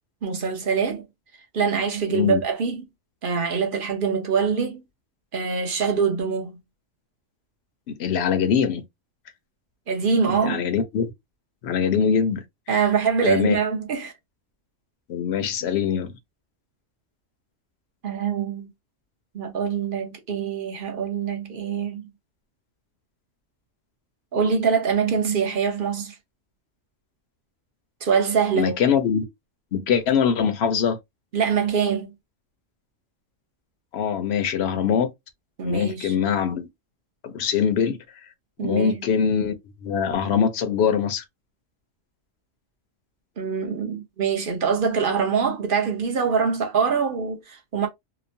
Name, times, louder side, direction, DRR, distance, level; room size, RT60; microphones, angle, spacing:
voice 1, 0.2-1.0 1.5-2.9 3.2-4.8 5.3-6.6 9.9-10.7 12.7-14.1 18.0-18.7 19.3-22.1 24.3-26.2 28.0-28.7 31.3-32.1 35.6-36.1 38.6-39.0 43.4-47.9, right 6 dB, 50° right, 0.7 m, -24 dB
voice 2, 8.0-8.8 10.4-11.1 11.6-12.4 13.2-13.6 15.1-16.1 28.5-29.2 29.7-31.0 33.9-35.1 35.6-36.7 37.2-38.0 38.6-39.5 39.8-41.2, left 7 dB, 65° left, 0.8 m, -22 dB
2.9 x 2.1 x 2.6 m
omnidirectional pair, 1.3 m